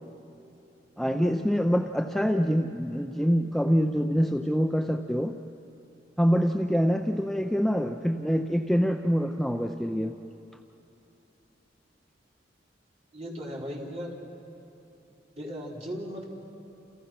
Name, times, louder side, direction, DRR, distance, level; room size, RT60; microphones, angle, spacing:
voice 1, 1.0-5.4 6.2-10.2, equal, ahead, 5 dB, 0.6 m, -25 dB
voice 2, 13.1-14.2 15.3-16.2, equal, 35° right, -3 dB, 4.1 m, -37 dB
29.5 x 29.5 x 5.9 m, 2.8 s
head